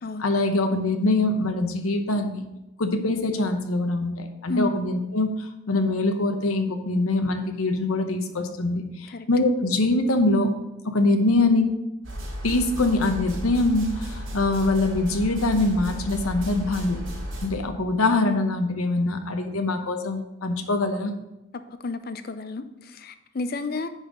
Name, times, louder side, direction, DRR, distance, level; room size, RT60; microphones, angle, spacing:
voice 1, 0.2-2.5 2.8-5.3 5.7-10.5 10.8-11.7 12.4-17.0 17.4-21.1, left 2 dB, 85° left, 6 dB, 0.9 m, -23 dB
sound 1, 12.0-17.5, equal, 70° right, 2.3 m, -34 dB
voice 2, 21.7-23.9, left 2 dB, 45° left, 11 dB, 0.5 m, -31 dB
10.0 x 4.2 x 5.0 m, 0.95 s
head